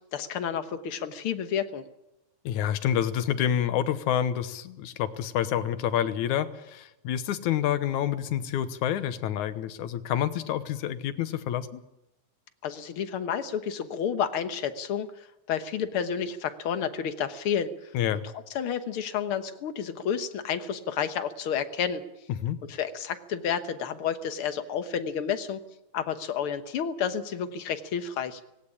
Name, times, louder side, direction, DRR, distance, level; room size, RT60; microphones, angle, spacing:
voice 1, 0.1-1.8 12.6-17.9 18.5-22.0 22.7-25.6 25.9-28.4, left 8 dB, 55° left, 11 dB, 1.7 m, -30 dB
voice 2, 2.5-11.8 17.9-18.2 22.4-22.6, left 10 dB, 85° left, 13 dB, 2.5 m, -28 dB
18.5 x 17.5 x 9.9 m, 0.90 s
omnidirectional pair, 3.4 m